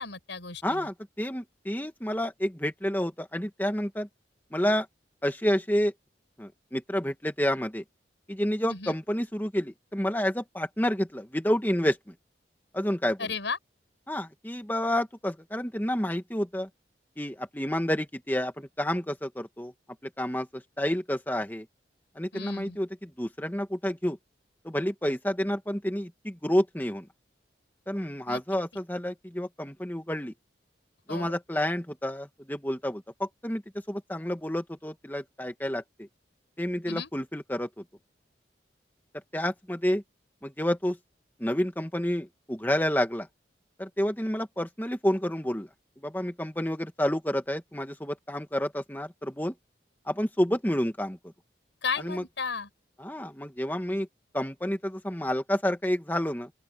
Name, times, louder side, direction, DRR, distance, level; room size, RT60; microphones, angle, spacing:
voice 1, 0.0-0.9 8.7-9.0 13.2-13.6 22.3-22.8 28.3-28.4 31.1-31.3 36.9-37.1 51.8-52.7, left 5 dB, 85° left, 6.1 m, -34 dB
voice 2, 0.6-4.1 4.5-4.9 5.2-5.9 6.4-7.8 8.3-12.1 12.7-13.3 14.1-16.7 17.2-19.7 20.2-21.7 22.2-24.2 24.6-27.1 27.9-30.3 31.1-33.6 33.9-36.1 36.6-37.7 39.3-40.0 40.4-41.0 41.4-43.3 43.8-45.7 46.0-49.5 50.1-51.2 52.0-52.2 53.0-54.1 54.3-56.5, equal, 10° left, 1.6 m, -29 dB
open air
head